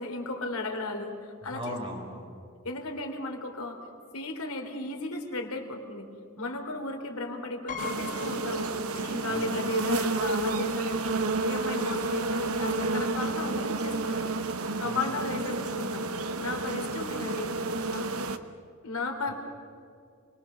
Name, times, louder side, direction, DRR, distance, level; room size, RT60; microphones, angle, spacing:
voice 1, 0.0-1.8 2.6-3.8 4.1-6.1 6.4-16.1 16.4-17.5 17.9-18.1 18.8-19.3, left 2 dB, 85° left, 4 dB, 3.3 m, -35 dB
voice 2, 1.4-2.3 9.3-9.5 14.8-15.0 19.2-19.3, left 1 dB, 25° right, -1 dB, 6.0 m, -38 dB
Piano, 7.7-9.5 9.8-9.9 11.1-11.2 11.5-11.7, left 8 dB, 35° left, 1.9 m, -41 dB
sound 1, 7.8-18.4, right 3 dB, 85° right, 1.1 m, -30 dB
28.5 x 22.0 x 6.8 m, 2.3 s
head